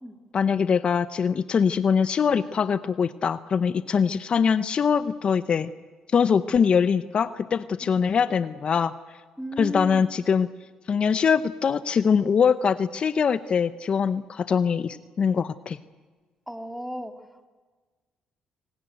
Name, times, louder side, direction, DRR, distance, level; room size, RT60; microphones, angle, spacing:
voice 1, 0.3-5.7 6.1-8.9 9.6-10.5 10.9-15.8, left 6 dB, 50° left, 13 dB, 0.8 m, -23 dB
voice 2, 9.4-10.1 16.5-17.1, equal, ahead, 6 dB, 2.7 m, -34 dB
25.5 x 18.5 x 9.3 m, 1.4 s
cardioid pair, 80°, 2 cm